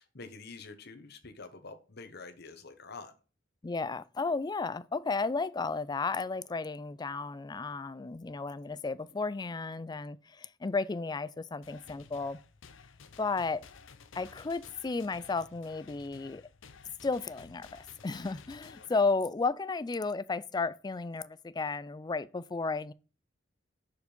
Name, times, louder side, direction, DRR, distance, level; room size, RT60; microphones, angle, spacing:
voice 1, 0.0-3.1 18.8-19.0, left 4 dB, 55° left, 1.2 m, -47 dB
voice 2, 3.6-12.4 13.2-13.6 14.1-16.4 17.0-22.9, left 4 dB, 20° left, 0.4 m, -33 dB
sound 1, 11.6-18.9, left 5 dB, 75° left, 0.7 m, -54 dB
6.7 x 4.8 x 5.2 m
head